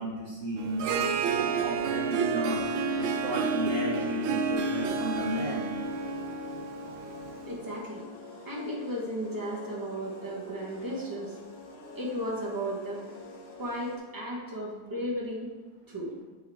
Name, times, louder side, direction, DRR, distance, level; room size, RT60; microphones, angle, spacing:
voice 1, 0.0-2.6 3.0-5.7, right 1 dB, 55° right, -5 dB, 1.1 m, -33 dB
Harp, 0.6-7.7, right 4 dB, 85° right, 1.4 m, -30 dB
sound 1, 4.8-14.0, left 3 dB, 40° left, 1.0 m, -47 dB
voice 2, 7.4-8.0 8.4-11.4 11.9-13.0 13.6-15.5 15.9-16.1, equal, 30° right, -4 dB, 0.4 m, -34 dB
6.9 x 6.3 x 3.4 m, 1.3 s
omnidirectional pair, 2.3 m